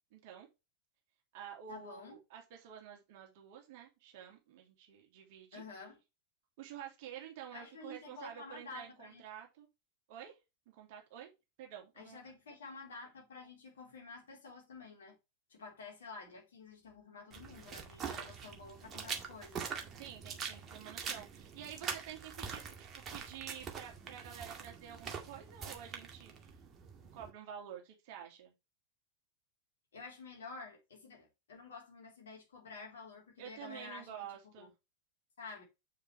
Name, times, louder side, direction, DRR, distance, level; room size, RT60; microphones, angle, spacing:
voice 1, 0.1-0.5 1.3-5.6 6.6-9.7 10.1-10.4 10.7-11.3 11.6-12.2 19.9-26.6 27.1-28.5 33.4-34.7, right 9 dB, 50° right, 2.6 m, -49 dB
voice 2, 1.7-2.2 5.5-6.0 7.5-9.2 12.0-15.2 15.5-19.6 29.9-34.2 34.4-34.7 35.4-35.6, left 3 dB, 65° left, 3.7 m, -50 dB
sound 1, 17.3-27.3, right 6 dB, 25° right, 2.0 m, -44 dB
7.5 x 6.5 x 3.3 m
figure-of-eight pair, 90°, 0 cm